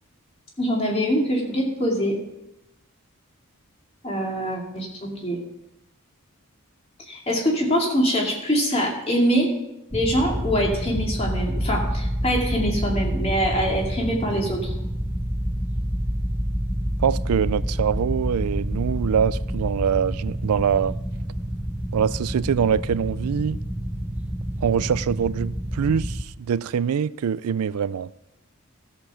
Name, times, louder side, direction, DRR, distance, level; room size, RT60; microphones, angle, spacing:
voice 1, 0.6-2.2 4.0-5.4 7.0-9.5 9.9-14.8, equal, 25° left, 2.3 m, -24 dB
sound 1, 9.9-26.2, equal, 5° right, 0.5 m, -28 dB
voice 2, 17.0-21.0 21.9-23.6 24.6-28.1, right 7 dB, 90° right, 0.4 m, -24 dB
13.0 x 6.9 x 5.7 m
head